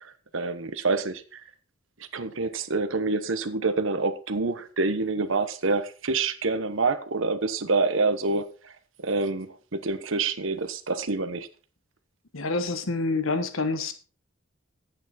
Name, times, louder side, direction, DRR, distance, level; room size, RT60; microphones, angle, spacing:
voice 1, 0.0-1.4 2.1-8.7 9.0-11.5, right 3 dB, 75° right, 1.1 m, -27 dB
voice 2, 12.3-13.9, left 3 dB, 90° left, 1.3 m, -27 dB
11.0 x 8.9 x 4.3 m
head